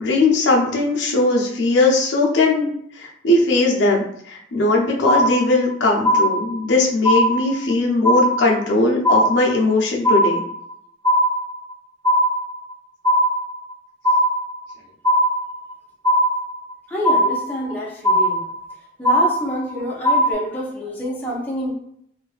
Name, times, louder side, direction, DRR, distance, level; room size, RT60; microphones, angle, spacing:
voice 1, 0.0-2.7 3.0-10.4, left 2 dB, 70° left, -1 dB, 0.5 m, -19 dB
sound 1, 5.0-5.7 6.0-6.7 7.0-7.7 8.0-8.7 9.0-9.7 10.0-10.7 11.0-11.7 12.0-12.7 13.0-13.7 14.0-14.7 15.0-15.7 16.0-16.7 17.0-17.7 18.0-18.7 19.0-19.7 20.0-20.3, equal, 85° right, 0.7 m, -18 dB
voice 2, 16.9-18.5 19.0-21.7, equal, 10° left, -5 dB, 0.5 m, -27 dB
2.6 x 2.3 x 2.3 m, 0.68 s
head